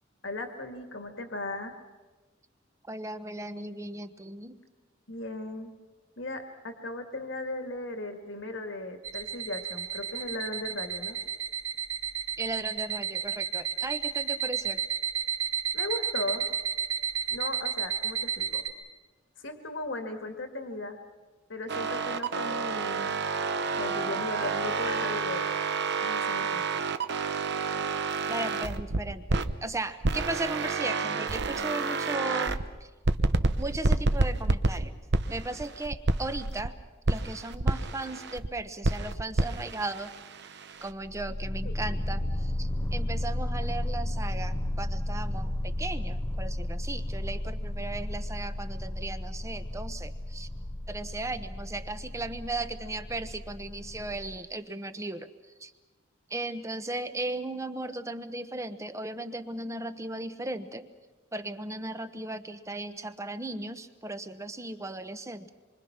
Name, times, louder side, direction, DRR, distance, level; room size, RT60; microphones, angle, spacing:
voice 1, 0.2-1.8 5.1-5.7 6.2-11.2 15.7-16.5 17.3-18.6 19.4-21.0 21.5-23.2 23.8-25.5 26.0-26.8, left 2 dB, 70° left, 6 dB, 2.1 m, -37 dB
voice 2, 2.8-4.6 12.4-14.8 28.3-32.9 33.6-34.9 35.3-36.8 37.1-40.1 40.8-50.5 50.9-55.3 55.6-55.7 56.3-60.9 61.3-65.5, right 2 dB, 15° right, 10 dB, 1.1 m, -36 dB
sound 1, 9.0-18.7, right 9 dB, 85° right, 3.2 m, -32 dB
sound 2, 21.7-29.5 30.0-32.7 33.0-36.7 37.0-38.5 38.8-40.9, right 3 dB, 60° right, 1.0 m, -29 dB
sound 3, 40.9-54.4, left 1 dB, 15° left, 0.8 m, -33 dB
26.5 x 24.5 x 6.0 m, 1.3 s
head